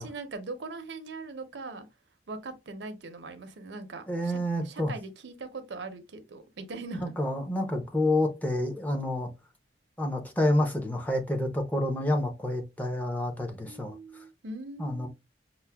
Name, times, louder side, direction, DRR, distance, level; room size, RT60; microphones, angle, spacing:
voice 1, 0.0-1.9 2.3-7.1 13.7-15.1, right 3 dB, 75° right, 0.6 m, -41 dB
voice 2, 4.1-4.9 7.2-9.3 10.0-13.9 14.8-15.1, left 1 dB, 10° left, 0.5 m, -28 dB
5.6 x 2.0 x 2.2 m
head